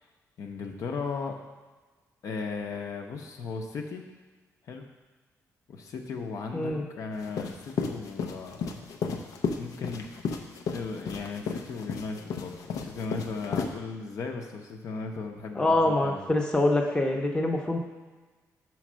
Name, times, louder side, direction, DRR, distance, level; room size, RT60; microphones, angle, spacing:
voice 1, 0.4-1.3 2.2-4.1 4.6-4.8 5.7-8.8 9.3-10.1 10.7-16.2, left 4 dB, 65° left, 2 dB, 0.8 m, -36 dB
voice 2, 6.5-6.8 15.6-17.8, left 2 dB, 15° left, 0 dB, 0.8 m, -25 dB
sound 1, 7.2-13.7, left 5 dB, 90° left, 0.7 m, -33 dB
6.3 x 4.5 x 6.2 m, 1.3 s
cardioid pair, 145°, 6 cm